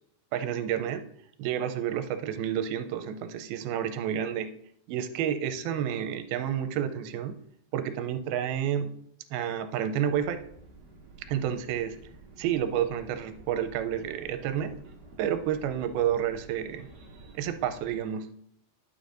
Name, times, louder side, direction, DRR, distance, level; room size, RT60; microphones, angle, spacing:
voice 1, 0.3-1.0 1.4-4.5 4.9-7.4 7.7-8.9 9.3-10.4 11.3-12.0 12.4-14.8 15.2-16.9 17.3-18.3, right 9 dB, 85° right, 9 dB, 2.5 m, -30 dB
sound 1, 10.0-18.0, right 3 dB, 45° right, 1.4 m, -50 dB
11.0 x 6.8 x 2.6 m, 0.69 s
omnidirectional pair, 4.3 m